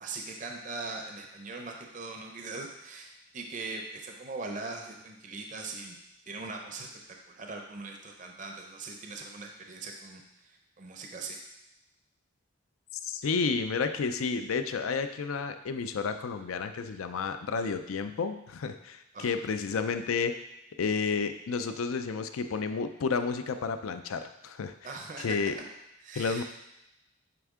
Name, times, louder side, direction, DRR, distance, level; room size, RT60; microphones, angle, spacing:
voice 1, 0.0-6.0 6.3-6.9 7.3-11.4 19.1-19.3 24.8-25.4 26.0-26.4, right 3 dB, 40° right, 3 dB, 0.5 m, -40 dB
voice 2, 13.0-20.3 20.8-24.7 25.2-25.6 26.1-26.4, left 5 dB, 85° left, 9 dB, 0.5 m, -31 dB
8.9 x 3.6 x 3.6 m, 0.88 s
head